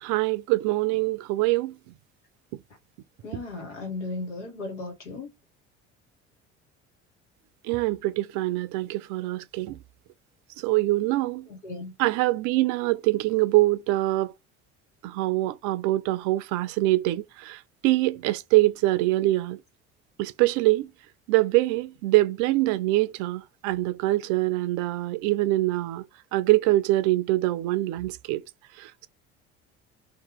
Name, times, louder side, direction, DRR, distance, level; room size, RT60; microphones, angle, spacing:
voice 1, 0.0-1.8 7.6-9.8 10.6-11.5 12.0-14.3 15.0-19.6 20.2-20.9 21.3-26.0 26.3-28.4 28.8-29.1, right 18 dB, 60° right, 0.5 m, -24 dB
voice 2, 3.2-5.3 11.5-11.9, left 3 dB, 80° left, 1.2 m, -36 dB
2.9 x 2.2 x 3.5 m
hypercardioid pair, 60°, 35 cm